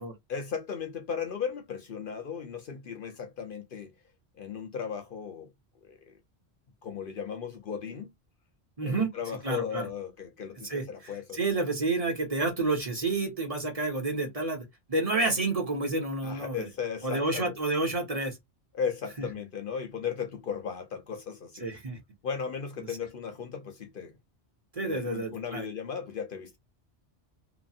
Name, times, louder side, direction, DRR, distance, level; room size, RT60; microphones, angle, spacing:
voice 1, 0.3-3.9 4.4-5.5 5.8-6.1 6.8-8.1 8.8-11.4 16.2-17.6 18.7-21.7 22.2-24.1 24.8-26.6, left 7 dB, 60° left, 0.7 m, -36 dB
voice 2, 8.8-9.1 9.4-9.9 10.6-16.7 17.0-18.4 21.6-22.0 22.8-22.9 24.7-25.7, right 3 dB, 35° right, 1.1 m, -30 dB
2.9 x 2.5 x 2.4 m
omnidirectional pair, 1.1 m